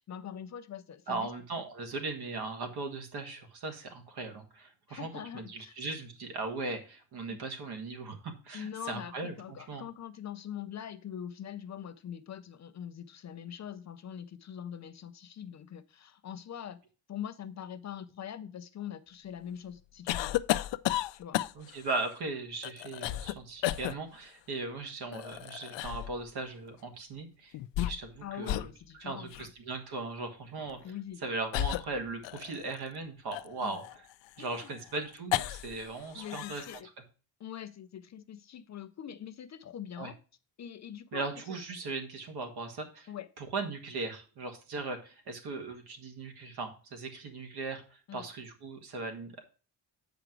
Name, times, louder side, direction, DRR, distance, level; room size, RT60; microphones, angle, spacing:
voice 1, 0.0-1.3 4.9-5.8 7.3-7.4 8.5-16.8 17.1-20.3 21.1-21.4 28.2-29.3 30.8-31.2 33.6-33.8 34.4-34.7 36.1-36.9 37.4-40.2 40.6-41.3 43.1-43.3 48.1-48.3, left 9 dB, 40° left, 0.5 m, -43 dB
voice 2, 1.1-9.9 21.6-28.7 29.0-30.8 31.2-33.8 34.4-36.7 40.0-40.1 41.1-43.1 43.4-49.4, right 3 dB, 60° right, 2.0 m, -38 dB
sound 1, 20.1-21.8 22.6-23.3 23.6-23.9 25.1-26.1 27.5-28.2 28.4-28.7 29.3-29.5 30.6-30.8 31.5-32.7 33.3-35.8 36.1-36.8, left 15 dB, 85° left, 0.6 m, -33 dB
7.9 x 5.1 x 4.6 m
cardioid pair, 155°, 43 cm